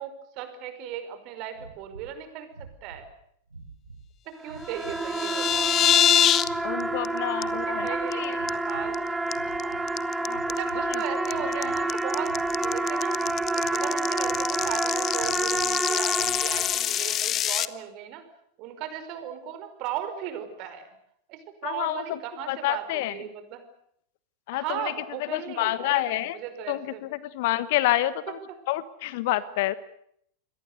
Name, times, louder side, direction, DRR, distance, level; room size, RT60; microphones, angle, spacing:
voice 1, 0.0-3.1 4.2-5.8 7.5-9.0 9.4-9.8 10.5-13.2 13.5-18.2 18.6-20.9 21.3-23.6 24.5-27.0 29.3-29.4, right 10 dB, 40° right, 9 dB, 5.2 m, -37 dB
sound 1, 1.5-2.2 2.5-3.1 3.5-4.1 4.5-5.1 5.4-6.0 6.4-7.1 7.4-8.0 8.3-9.0 9.3-9.9 10.3-10.9 11.3-11.8 12.2-12.8 13.2-13.8 14.2-14.8 15.2-15.7 16.1-16.7, right 3 dB, 80° right, 4.3 m, -47 dB
sound 2, 4.4-17.1, right 2 dB, 5° right, 1.6 m, -29 dB
sound 3, 4.8-6.5 6.8-7.1 7.4-7.5 7.9-8.1 8.5-8.9 9.3-17.6, left 11 dB, 30° left, 1.0 m, -25 dB
voice 2, 6.6-8.5 10.3-10.4 10.9-11.0 11.4-11.7 21.6-22.2 22.5-23.2 24.5-24.9 25.2-26.4 26.7-28.4 28.7-29.7, left 15 dB, 50° left, 17 dB, 1.3 m, -28 dB
29.0 x 23.0 x 6.8 m, 0.70 s
figure-of-eight pair, 90°, 0 cm